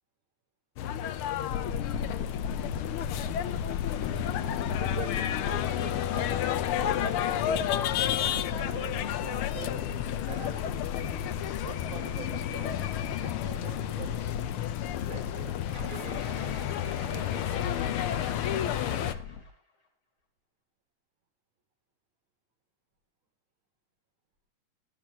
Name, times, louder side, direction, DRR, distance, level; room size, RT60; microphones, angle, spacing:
sound 1, 0.8-19.1, left 11 dB, 85° left, 1.2 m, -31 dB
sound 2, 1.5-19.4, left 6 dB, 60° left, 2.2 m, -38 dB
voice 1, 4.8-7.6 8.3-9.9 10.3-11.0 11.6-12.9 13.2-14.4 15.0-17.9, right 7 dB, 65° right, -3 dB, 4.7 m, -45 dB
sound 3, 15.7-19.5, left 3 dB, 45° left, 3.9 m, -44 dB
17.5 x 12.0 x 2.9 m, 0.38 s
omnidirectional pair, 3.3 m